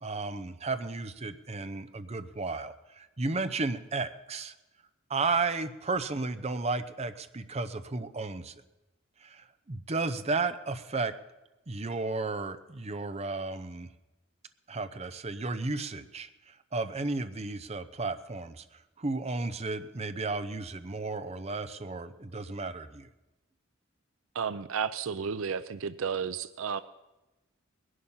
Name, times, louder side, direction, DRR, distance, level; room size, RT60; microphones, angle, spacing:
voice 1, 0.0-4.5 5.1-8.5 9.2-11.1 11.7-13.9 14.7-18.6 19.0-23.1, right 3 dB, 30° right, 10 dB, 0.7 m, -33 dB
voice 2, 24.3-26.8, right 6 dB, 75° right, 14 dB, 0.5 m, -32 dB
20.0 x 11.0 x 5.6 m, 1.0 s
head